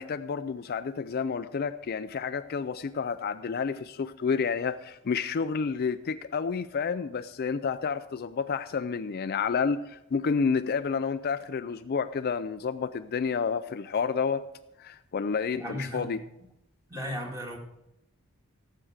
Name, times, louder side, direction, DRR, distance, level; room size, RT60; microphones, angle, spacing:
voice 1, 0.0-14.5 14.8-16.2, left 5 dB, 45° left, 11 dB, 0.4 m, -30 dB
voice 2, 15.6-16.2 16.9-17.6, equal, 15° right, 0 dB, 2.3 m, -35 dB
17.0 x 7.7 x 5.0 m, 0.87 s
head